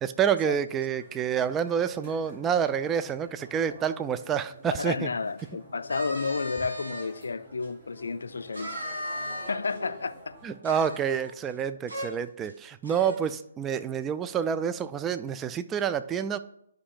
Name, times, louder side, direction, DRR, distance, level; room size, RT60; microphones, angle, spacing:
voice 1, 0.0-5.1 10.4-16.4, right 8 dB, 15° right, 0.3 m, -28 dB
sound 1, 1.0-10.6, equal, 35° right, 2.4 m, -49 dB
voice 2, 4.8-8.9 9.5-10.3, left 4 dB, 65° left, 0.4 m, -31 dB
sound 2, 5.8-7.1 7.6-7.7 8.5-9.8 10.6-11.6 11.9-12.1 12.4-12.5 12.8-13.3, equal, 70° right, 2.5 m, -37 dB
11.0 x 5.1 x 2.4 m
figure-of-eight pair, 135°, 0 cm